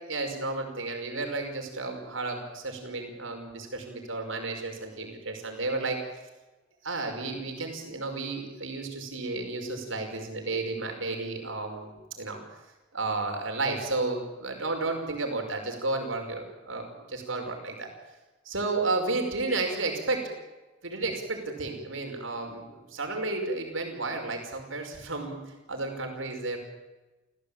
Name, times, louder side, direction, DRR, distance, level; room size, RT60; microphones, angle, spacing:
voice 1, 0.1-6.0 6.8-12.4 12.9-17.9 18.5-20.3 20.8-25.4 25.7-26.6, right 3 dB, 90° right, 3 dB, 5.7 m, -32 dB
28.5 x 15.5 x 9.0 m, 1.1 s
head